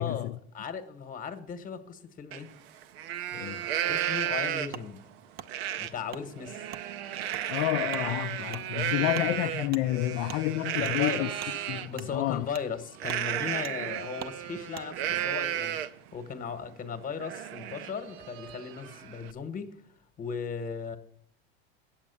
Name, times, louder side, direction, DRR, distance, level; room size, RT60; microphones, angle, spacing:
voice 1, 0.0-0.4 3.3-3.6 7.5-11.3 11.7-12.5, left 16 dB, 45° left, 0.4 m, -30 dB
voice 2, 0.5-2.5 3.9-5.0 5.8-6.7 9.0-9.1 10.8-11.3 11.9-15.8 16.1-21.0, left 6 dB, 25° left, 1.2 m, -37 dB
Livestock farm animals working animals, 2.3-2.4 2.8-4.9 5.5-5.9 6.3-11.9 13.0-16.1 16.5-16.6 16.9-19.3, right 11 dB, 75° right, 0.7 m, -33 dB
Wood, 4.7-4.9 5.4-5.5 6.1-6.2 6.7-6.8 7.3-7.4 7.9-8.1 8.5-8.6 9.1-9.3 9.7-9.8 10.3-10.4 10.8-11.0 11.4-11.5 11.9-12.1 12.5-12.7 13.0-13.2 13.6-13.8 14.2-14.4 14.7-14.9, right 9 dB, 30° right, 0.5 m, -43 dB
8.5 x 7.4 x 6.9 m
supercardioid pair, 110°, 31 cm